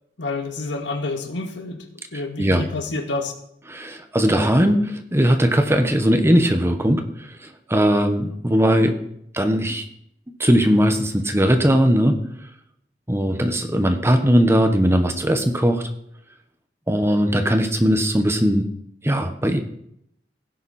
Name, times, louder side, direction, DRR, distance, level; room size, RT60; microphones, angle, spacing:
voice 1, 0.2-1.9 2.1-3.3, left 3 dB, 80° left, 5 dB, 1.9 m, -28 dB
voice 2, 3.7-9.0 9.3-9.8 10.4-12.2 13.1-15.8 16.9-18.7 19.0-19.6, equal, 15° right, 6 dB, 1.3 m, -19 dB
16.5 x 10.0 x 4.4 m, 0.73 s
head